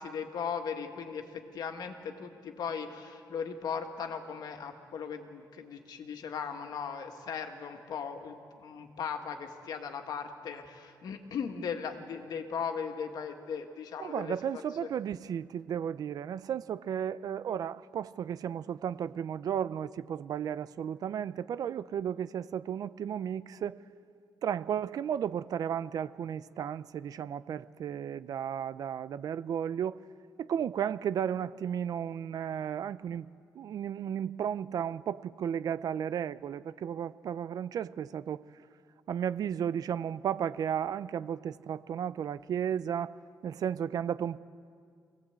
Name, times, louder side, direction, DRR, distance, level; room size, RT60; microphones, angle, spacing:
voice 1, 0.0-14.9, left 6 dB, 70° left, 5 dB, 1.9 m, -38 dB
voice 2, 14.0-23.8 24.4-30.0 30.4-33.3 33.5-38.4 39.1-43.1 43.4-44.4, right 9 dB, 60° right, 15 dB, 0.5 m, -34 dB
23.0 x 18.0 x 8.2 m, 2.3 s
cardioid pair, 125°, 7 cm